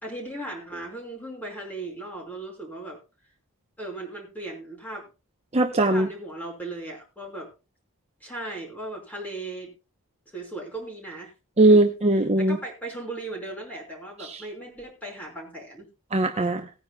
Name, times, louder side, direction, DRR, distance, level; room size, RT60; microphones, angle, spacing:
voice 1, 0.0-3.0 3.8-5.1 5.9-7.5 8.2-9.7 10.3-11.3 11.7-11.9 12.4-15.9, right 2 dB, 10° left, 0 dB, 5.1 m, -37 dB
voice 2, 5.5-6.1 11.6-12.6 14.3-14.4 16.1-16.6, right 2 dB, 30° right, 5 dB, 0.9 m, -19 dB
19.0 x 10.0 x 2.3 m, 0.30 s
head